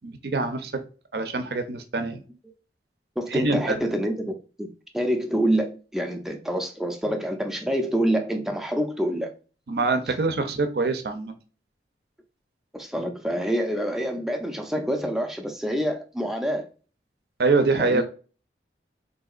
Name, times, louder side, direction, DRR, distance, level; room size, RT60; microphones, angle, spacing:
voice 1, 0.0-0.8 1.1-2.2 3.3-3.6 9.7-11.3 17.4-18.0, right 3 dB, 65° right, 0.5 m, -24 dB
voice 2, 3.2-9.3 12.7-16.7 17.8-18.0, equal, 5° right, 0.4 m, -27 dB
3.7 x 2.7 x 2.4 m
head